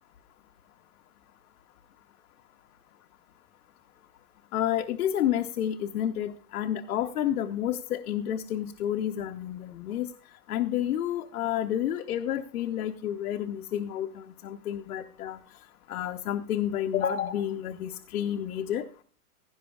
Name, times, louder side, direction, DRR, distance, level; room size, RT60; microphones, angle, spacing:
voice 1, 4.5-10.1 10.5-15.4 15.9-18.8, left 10 dB, 70° left, 5 dB, 0.8 m, -30 dB
16.0 x 11.5 x 2.3 m, 0.39 s
supercardioid pair, 175°, 45 cm